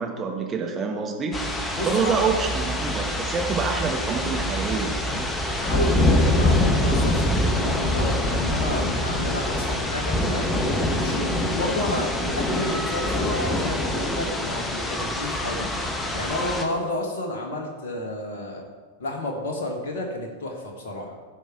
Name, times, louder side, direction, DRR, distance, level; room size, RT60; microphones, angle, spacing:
voice 1, 0.0-1.4 1.8-5.3, right 5 dB, 25° right, 1 dB, 1.6 m, -27 dB
sound 1, 1.3-16.6, left 1 dB, 15° left, 1.2 m, -25 dB
voice 2, 1.7-2.2 5.6-10.5 10.9-15.7 16.1-18.6 19.0-21.2, left 1 dB, 55° left, 1 dB, 1.8 m, -31 dB
15.0 x 5.2 x 4.8 m, 1.5 s
figure-of-eight pair, 90°, 0 cm